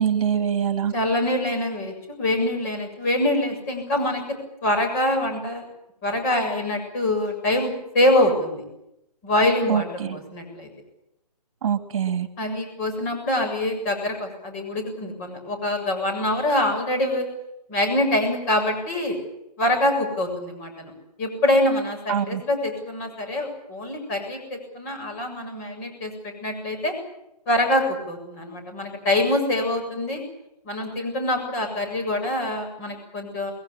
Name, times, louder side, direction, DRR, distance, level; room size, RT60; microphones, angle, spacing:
voice 1, 0.0-0.9 9.7-10.2 11.6-12.3 22.1-22.4, right 8 dB, 45° right, 9 dB, 2.1 m, -24 dB
voice 2, 0.9-4.4 4.6-5.6 6.0-8.6 9.2-10.7 12.4-17.3 17.7-19.2 19.6-20.9 21.2-26.9 27.5-30.2 30.6-33.5, left 1 dB, 25° left, 3 dB, 7.3 m, -24 dB
23.0 x 22.0 x 8.7 m, 0.84 s
hypercardioid pair, 165°, 21 cm